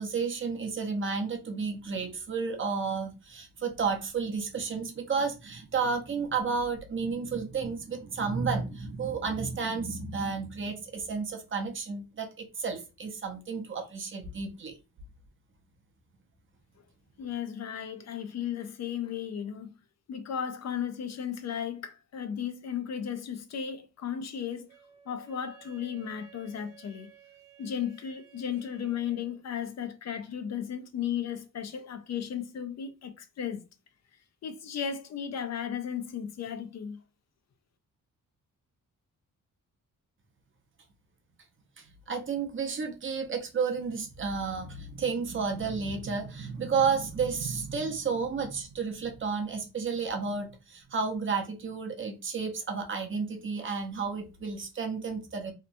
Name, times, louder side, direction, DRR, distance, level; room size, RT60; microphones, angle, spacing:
voice 1, 0.0-14.8 41.8-55.5, right 5 dB, 40° right, 0.6 m, -32 dB
voice 2, 17.2-19.7 20.1-24.7 25.1-27.1 27.6-33.6 34.4-37.0, left 8 dB, 55° left, 0.4 m, -35 dB
Wind instrument woodwind instrument, 24.7-29.3, right 9 dB, 65° right, 0.9 m, -56 dB
2.9 x 2.1 x 2.5 m
cardioid pair, 120°, 33 cm